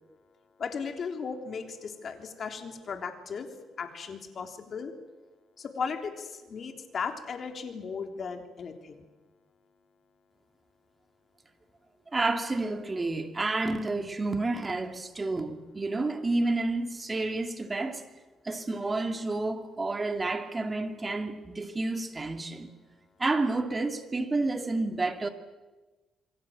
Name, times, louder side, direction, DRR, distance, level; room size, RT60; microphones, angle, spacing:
voice 1, 0.6-3.5 3.8-4.9 5.6-9.0, left 5 dB, 50° left, 3.4 m, -36 dB
voice 2, 12.1-18.0 18.4-22.7 23.2-25.3, right 2 dB, 25° right, 2.5 m, -30 dB
27.5 x 22.0 x 7.6 m
cardioid pair, 90°, 0 cm